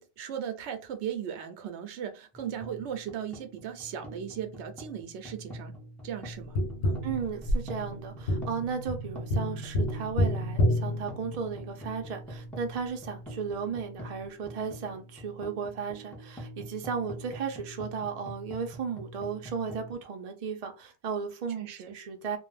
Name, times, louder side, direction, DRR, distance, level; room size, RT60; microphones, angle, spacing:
voice 1, 0.0-5.7 6.0-7.0 21.6-21.9, right 9 dB, 85° right, 0.9 m, -37 dB
sound 1, 2.3-19.9, equal, ahead, 0.5 m, -45 dB
Tap, 6.6-11.8 14.4-14.5, equal, 80° left, 0.8 m, -29 dB
voice 2, 7.0-22.4, right 6 dB, 45° right, 0.5 m, -35 dB
2.3 x 2.1 x 3.1 m
omnidirectional pair, 1.1 m